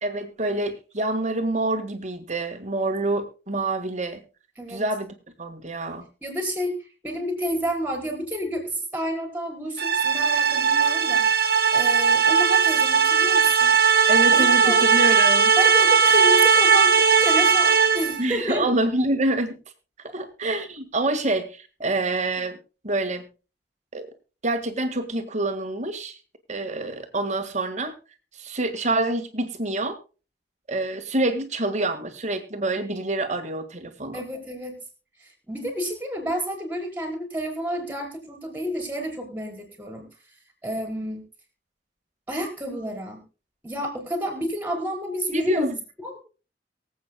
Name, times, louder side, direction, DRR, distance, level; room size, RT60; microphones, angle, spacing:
voice 1, 0.0-4.2 4.7-5.1 5.4-6.1 14.1-15.5 18.2-19.6 20.0-22.6 22.8-23.3 23.9-24.1 24.4-26.2 26.5-27.9 28.3-30.0 30.7-34.3 45.3-45.8, right 2 dB, 40° right, 7 dB, 1.8 m, -26 dB
voice 2, 6.2-6.8 7.0-11.2 11.7-13.8 14.3-14.8 15.6-18.7 21.8-21.9 34.1-34.8 35.2-40.1 40.6-41.2 42.3-43.2 43.6-45.7 46.0-46.2, equal, 10° right, 2 dB, 4.7 m, -30 dB
sound 1, 9.8-18.2, right 6 dB, 60° right, 1.2 m, -18 dB
23.5 x 8.3 x 2.2 m, 0.33 s
head